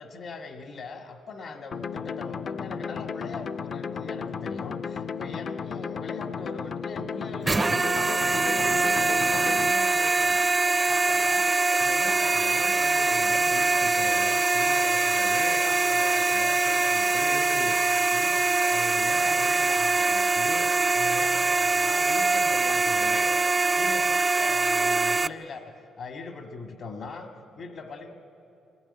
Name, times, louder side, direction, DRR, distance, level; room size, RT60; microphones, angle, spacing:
voice 1, 0.0-8.7 9.1-10.4 10.9-17.8 18.1-28.1, left 3 dB, 65° left, 4 dB, 1.7 m, -40 dB
sound 1, 1.7-9.7, left 6 dB, 50° left, 0.5 m, -34 dB
sound 2, 7.4-25.3, right 3 dB, 25° right, 0.4 m, -23 dB
22.5 x 17.0 x 9.9 m, 2.7 s
cardioid pair, 90°, 0 cm